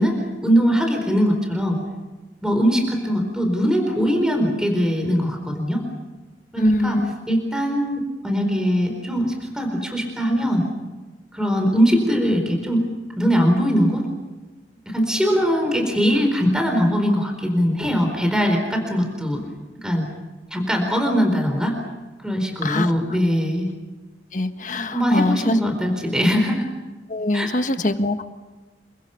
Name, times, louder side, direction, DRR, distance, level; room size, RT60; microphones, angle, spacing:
voice 1, 0.0-1.8 2.4-5.8 6.5-7.0 7.3-10.6 11.3-12.8 13.2-14.1 14.9-19.4 19.8-20.0 20.5-21.8 22.2-23.7 24.9-26.6 27.3-27.5, equal, 5° right, 3 dB, 4.2 m, -21 dB
voice 2, 6.6-7.1 22.6-22.9 24.3-25.5 27.1-28.2, left 2 dB, 45° left, 8 dB, 1.5 m, -23 dB
28.5 x 24.5 x 5.8 m, 1.2 s
head